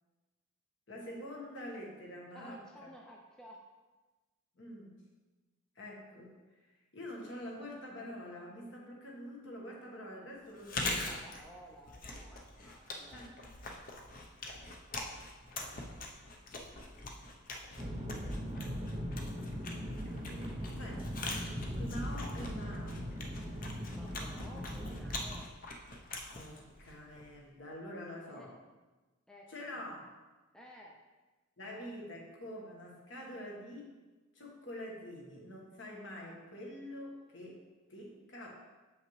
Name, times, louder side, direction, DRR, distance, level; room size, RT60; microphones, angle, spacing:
voice 1, 0.9-2.6 4.6-5.0 5.7-6.4 6.9-11.2 13.1-13.2 20.0-21.0 21.8-23.0 26.3-28.5 29.5-30.0 31.6-33.9 34.3-37.6 37.9-38.5, left 1 dB, 60° left, -2 dB, 1.4 m, -46 dB
voice 2, 2.3-3.6 10.8-13.2 20.4-21.2 23.9-25.5 28.3-28.5 29.3-29.9 30.5-31.0, equal, 5° left, -1 dB, 0.5 m, -54 dB
Chewing mastication, 10.5-27.4, left 2 dB, 40° left, 0.7 m, -43 dB
sound 1, 17.8-25.4, equal, 25° right, 0.8 m, -39 dB
7.0 x 5.6 x 3.2 m, 1.2 s
head